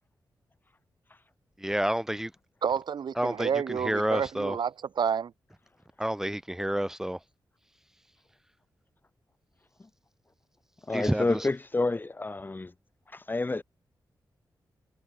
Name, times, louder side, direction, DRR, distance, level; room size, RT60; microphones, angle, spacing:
voice 1, 1.6-2.3 3.2-4.6 6.0-7.2 10.9-11.4, right 1 dB, 5° right, 6.3 m, -29 dB
voice 2, 2.6-5.3, right 7 dB, 75° right, 5.9 m, -29 dB
voice 3, 10.9-12.7 13.1-13.6, left 3 dB, 25° left, 3.8 m, -29 dB
wide cardioid pair, 95°, 8 cm